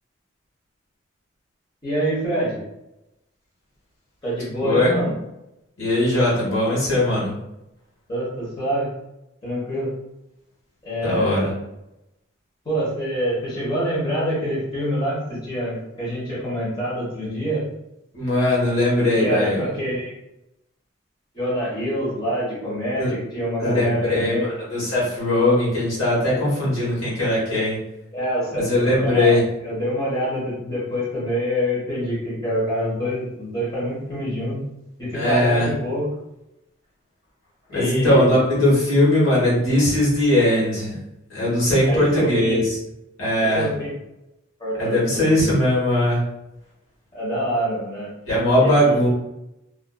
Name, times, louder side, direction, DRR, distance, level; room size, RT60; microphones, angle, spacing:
voice 1, 1.8-2.6 4.2-5.1 8.1-8.9 9.4-9.9 10.8-11.6 12.6-17.6 19.2-20.1 21.3-24.5 28.1-29.4 29.6-34.6 35.0-36.1 37.7-38.4 41.9-42.6 43.4-43.9 44.6-45.5 47.1-48.1 48.6-49.0, equal, 20° left, -8 dB, 1.0 m, -26 dB
voice 2, 5.8-7.3 11.0-11.5 18.1-19.6 23.0-23.1 23.6-24.4 24.7-27.8 28.6-29.4 35.1-35.7 37.7-41.0 41.3-42.6 43.2-43.7 44.8-46.2 48.3-49.1, left 1 dB, 80° left, -7 dB, 1.2 m, -19 dB
2.5 x 2.4 x 2.3 m, 0.89 s
head